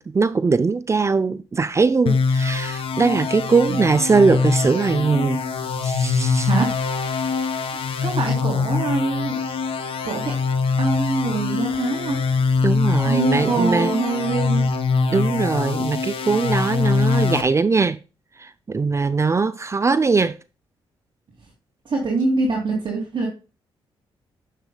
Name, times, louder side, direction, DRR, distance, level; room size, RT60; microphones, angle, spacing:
voice 1, 0.0-5.4 5.8-6.5 12.6-13.9 15.1-18.0 18.4-20.4, right 4 dB, 30° right, 0.5 m, -20 dB
sound 1, 2.1-17.4, left 4 dB, 70° left, 1.4 m, -23 dB
voice 2, 7.7-9.4 10.0-10.3 10.8-12.2 13.0-14.7 21.8-23.3, right 3 dB, 55° right, 3.1 m, -24 dB
9.6 x 6.7 x 2.3 m
cardioid pair, 70°, 10 cm